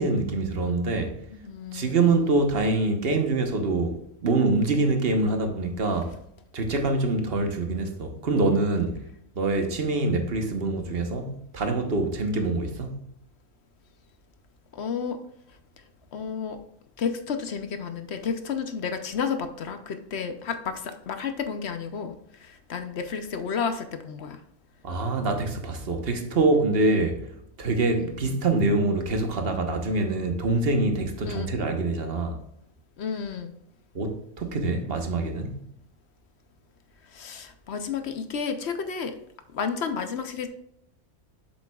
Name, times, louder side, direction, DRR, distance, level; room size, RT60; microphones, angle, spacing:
voice 1, 0.0-1.1 1.7-4.0 4.2-6.1 6.5-9.0 9.3-13.0 24.8-27.2 27.6-32.4 33.9-35.6, right 2 dB, 45° right, 1.2 m, -25 dB
voice 2, 1.3-2.2 14.7-15.2 16.1-16.6 17.0-24.4 28.0-28.2 31.2-31.5 33.0-33.5 37.1-39.2 39.5-40.5, left 6 dB, 60° left, 0.8 m, -31 dB
7.6 x 7.1 x 2.3 m
omnidirectional pair, 1.5 m